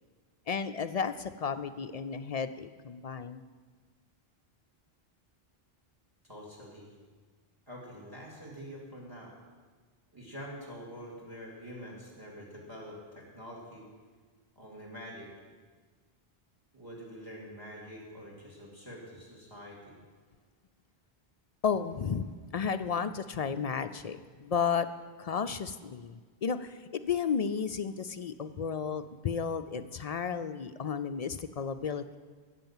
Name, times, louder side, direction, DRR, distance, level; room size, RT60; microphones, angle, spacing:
voice 1, 0.5-3.4 21.6-24.9 25.2-32.2, left 6 dB, 55° left, 11 dB, 0.4 m, -33 dB
voice 2, 6.3-6.9 7.7-9.3 10.1-13.9 14.6-15.3 16.7-19.9, equal, 20° right, -2 dB, 2.4 m, -46 dB
13.5 x 8.3 x 7.2 m, 1.5 s
omnidirectional pair, 1.0 m